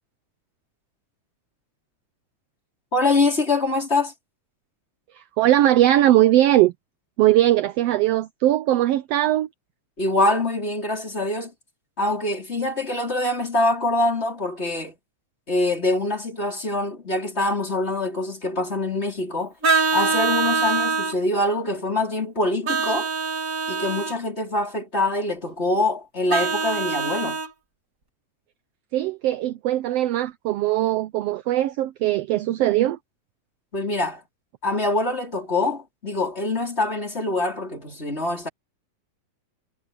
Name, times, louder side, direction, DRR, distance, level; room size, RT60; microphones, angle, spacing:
voice 1, 2.9-4.1 10.0-11.5 12.0-15.0 15.5-19.5 19.9-23.1 23.7-27.4 33.7-34.2 34.6-38.5, left 2 dB, 20° left, 4.8 m, -24 dB
voice 2, 5.1-6.7 7.2-9.5 28.9-33.0, right 14 dB, 75° right, 1.5 m, -20 dB
Vehicle horn car horn honking, 19.6-21.2 22.7-24.2 26.3-27.5, right 4 dB, 30° right, 2.3 m, -24 dB
omnidirectional pair, 3.3 m